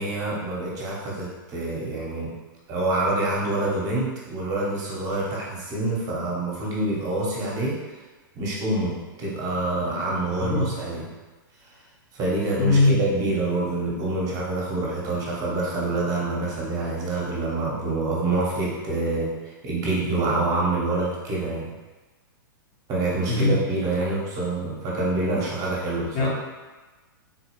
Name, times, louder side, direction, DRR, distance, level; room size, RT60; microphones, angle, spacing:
voice 1, 0.0-2.3 2.7-8.0 8.3-11.1 12.1-21.7 22.9-26.3, right 2 dB, 30° right, -5 dB, 0.9 m, -26 dB
voice 2, 10.4-10.7 12.6-13.0 23.3-23.6 26.1-26.3, left 3 dB, 35° left, -4 dB, 0.8 m, -20 dB
3.7 x 2.3 x 3.0 m, 1.2 s
hypercardioid pair, 125°, 12 cm